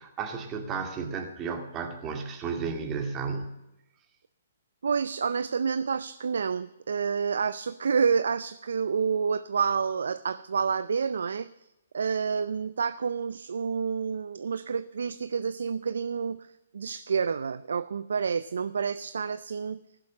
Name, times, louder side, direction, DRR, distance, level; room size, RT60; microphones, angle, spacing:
voice 1, 0.0-3.5, right 5 dB, 25° right, 4 dB, 2.1 m, -33 dB
voice 2, 4.8-11.5 11.9-19.8, right 6 dB, 75° right, 14 dB, 0.5 m, -29 dB
16.0 x 7.5 x 8.6 m, 0.93 s
hypercardioid pair, 135°, 0 cm